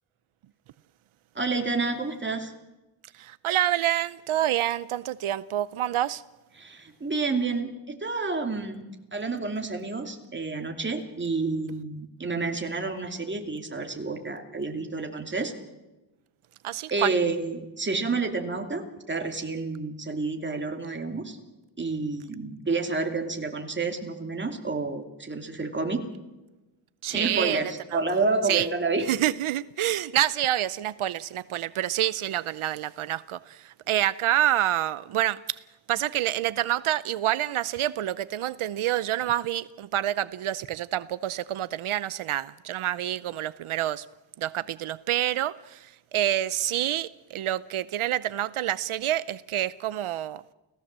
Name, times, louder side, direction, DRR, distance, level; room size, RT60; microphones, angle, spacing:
voice 1, 1.3-2.5 6.6-7.7 8.0-8.8 9.1-15.5 16.9-21.4 21.8-26.0 27.1-29.1, right 3 dB, 25° right, 2.5 m, -29 dB
voice 2, 3.1-6.2 16.6-17.1 27.0-28.0 28.5-28.7 29.1-35.4 35.9-44.1 44.4-50.5, right 12 dB, 85° right, 0.7 m, -27 dB
30.0 x 17.0 x 7.5 m
wide cardioid pair, 175°, 48 cm